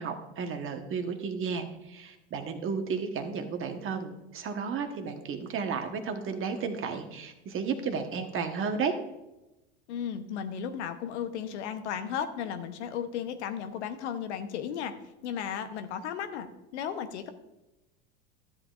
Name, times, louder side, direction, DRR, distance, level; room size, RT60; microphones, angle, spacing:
voice 1, 0.0-8.9, right 5 dB, 35° right, 6 dB, 1.2 m, -33 dB
voice 2, 9.9-14.9 15.2-17.3, left 8 dB, 75° left, 8 dB, 1.0 m, -35 dB
12.5 x 7.9 x 2.5 m, 0.98 s
hypercardioid pair, 95°, 34 cm